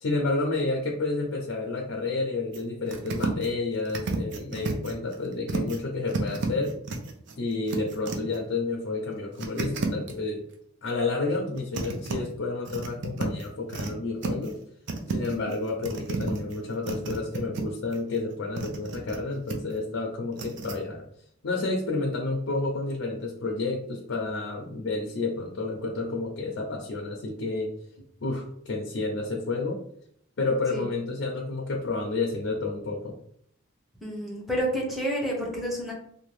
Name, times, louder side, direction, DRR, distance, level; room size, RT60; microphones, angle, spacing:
voice 1, 0.0-6.8 7.4-10.5 10.8-14.6 15.1-21.0 21.4-27.7 28.2-29.8 30.4-33.1, left 3 dB, 70° left, -1 dB, 0.5 m, -30 dB
sound 1, 2.5-2.6 2.9-3.5 3.9-5.8 6.1-8.4 9.4-10.1 11.3-12.2 12.7-13.9 14.2-14.6 14.9-17.6 17.9-19.2 19.5-19.8 20.3-20.8, right 3 dB, 60° right, 0.5 m, -32 dB
voice 2, 34.0-35.9, equal, ahead, -3 dB, 0.7 m, -30 dB
2.7 x 2.2 x 3.1 m, 0.67 s
head